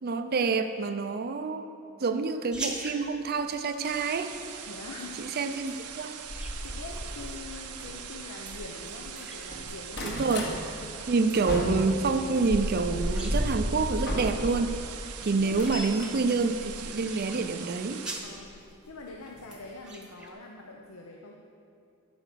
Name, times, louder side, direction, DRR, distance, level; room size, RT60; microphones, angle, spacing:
voice 1, 0.0-1.7 2.0-4.3 5.2-6.2 10.0-10.5 11.1-14.8 15.2-18.0, right 4 dB, 45° right, 8 dB, 0.4 m, -27 dB
sound 1, 2.5-20.3, right 2 dB, 5° right, 1.0 m, -46 dB
sound 2, 3.8-18.2, right 8 dB, 85° right, 0.8 m, -42 dB
voice 2, 4.7-5.2 6.6-10.1 10.7-11.1 15.4-16.0 18.2-18.6 18.9-21.4, left 3 dB, 80° left, 0 dB, 0.8 m, -44 dB
sound 3, 6.3-9.1 9.4-10.6 11.0-14.8 15.2-17.4 18.4-18.6 19.1-19.2 19.4-19.5, equal, 50° left, 1.3 m, -34 dB
13.5 x 5.1 x 6.8 m, 2.5 s
head